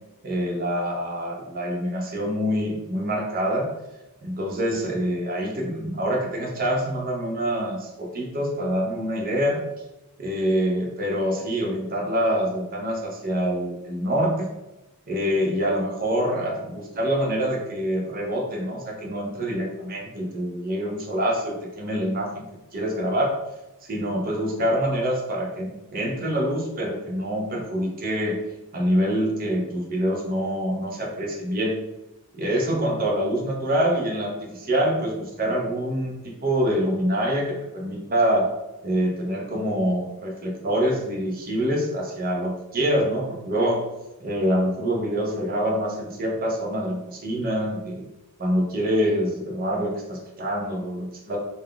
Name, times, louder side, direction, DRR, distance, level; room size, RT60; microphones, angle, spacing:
voice 1, 0.2-3.7 4.2-9.6 10.2-14.5 15.1-22.4 22.7-23.3 23.8-28.4 28.7-31.8 32.3-38.5 38.8-43.8 44.2-48.0 48.4-51.4, equal, 40° right, -1 dB, 0.8 m, -25 dB
3.8 x 2.7 x 3.4 m, 0.96 s
head